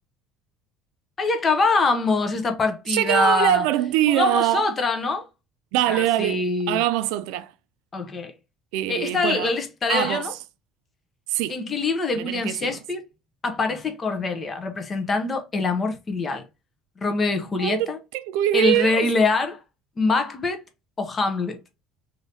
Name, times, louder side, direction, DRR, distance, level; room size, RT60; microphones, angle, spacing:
voice 1, 1.2-3.6 4.1-5.3 5.9-6.8 7.9-8.3 8.9-10.3 11.5-13.0 13.4-16.4 17.0-18.0 18.5-19.6 20.0-20.6 21.0-21.6, left 3 dB, 25° left, 0.7 m, -24 dB
voice 2, 2.9-4.7 5.7-7.5 8.7-9.5 9.9-10.3 11.3-11.6 12.1-12.8 17.6-19.1, right 13 dB, 80° right, 0.3 m, -23 dB
3.4 x 2.7 x 2.7 m
cardioid pair, 140°, 0 cm